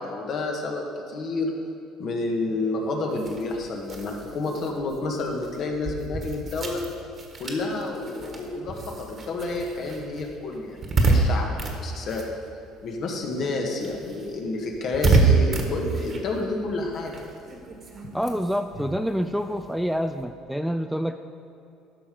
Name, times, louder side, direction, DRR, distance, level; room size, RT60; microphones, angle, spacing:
voice 1, 0.0-1.5 2.0-6.8 7.4-12.2 12.8-17.2, left 2 dB, 55° left, 1 dB, 1.6 m, -29 dB
sound 1, 3.1-13.0 13.3-20.2, right 3 dB, 40° right, 1.4 m, -28 dB
voice 2, 18.1-21.2, equal, ahead, 8 dB, 0.3 m, -27 dB
11.5 x 5.9 x 5.1 m, 2.9 s
supercardioid pair, 95°, 0 cm